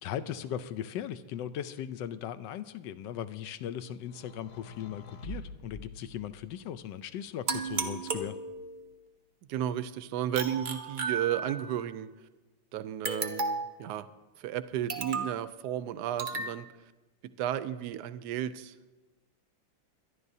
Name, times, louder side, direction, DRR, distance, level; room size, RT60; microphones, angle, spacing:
voice 1, 0.0-8.4, left 10 dB, 75° left, 13 dB, 1.2 m, -38 dB
sound 1, 4.0-6.8 7.7-8.6, equal, 55° left, 0.7 m, -47 dB
sound 2, 7.5-8.9 10.3-11.8 13.0-13.8 14.9-15.4 16.2-16.5, right 4 dB, 90° right, 0.4 m, -34 dB
voice 2, 9.5-12.1 12.7-14.1 14.4-16.7 17.4-18.7, right 11 dB, 70° right, 13 dB, 1.0 m, -33 dB
24.0 x 11.0 x 2.7 m, 1.2 s
omnidirectional pair, 2.2 m